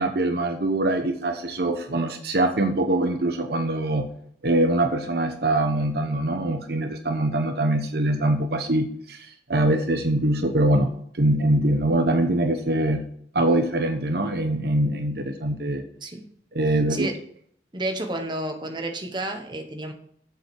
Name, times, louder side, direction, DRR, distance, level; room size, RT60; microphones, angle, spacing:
voice 1, 0.0-4.1 4.4-13.0 13.3-15.8 16.5-17.1, right 1 dB, 60° right, 6 dB, 0.9 m, -23 dB
voice 2, 17.7-19.9, right 2 dB, 25° right, 4 dB, 1.2 m, -30 dB
7.7 x 6.9 x 6.4 m, 0.64 s
head